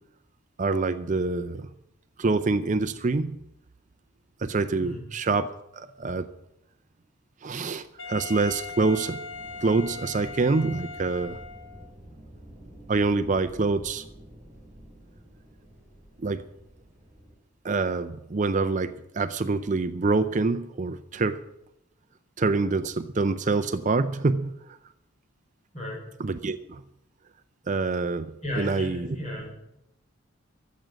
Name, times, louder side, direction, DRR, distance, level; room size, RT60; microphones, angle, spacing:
voice 1, 0.6-1.7 2.2-3.4 4.4-5.5 5.7-6.3 7.4-9.2 9.6-11.4 12.9-14.1 16.2-16.4 17.6-21.4 22.4-24.8 26.2-26.8 27.7-29.1, right 3 dB, 35° right, 11 dB, 0.5 m, -26 dB
Wind instrument woodwind instrument, 8.0-11.9, left 4 dB, 65° left, 1.7 m, -39 dB
sound 1, 9.3-17.3, right 1 dB, 15° right, 7.5 m, -49 dB
voice 2, 28.4-29.5, left 1 dB, 35° left, -1 dB, 5.3 m, -34 dB
14.0 x 7.6 x 9.2 m, 0.84 s
head